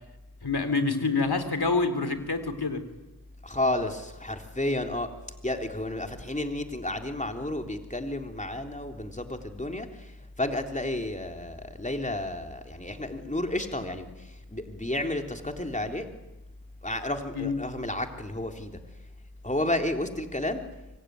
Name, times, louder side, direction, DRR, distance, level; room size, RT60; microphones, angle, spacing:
voice 1, 0.4-2.8 17.4-17.6, left 3 dB, 85° left, 9 dB, 3.7 m, -27 dB
voice 2, 3.4-5.1 5.4-16.1 16.8-18.7 19.4-20.6, left 1 dB, 20° left, 5 dB, 3.5 m, -31 dB
25.0 x 23.5 x 9.6 m, 0.98 s
wide cardioid pair, 40°, 38 cm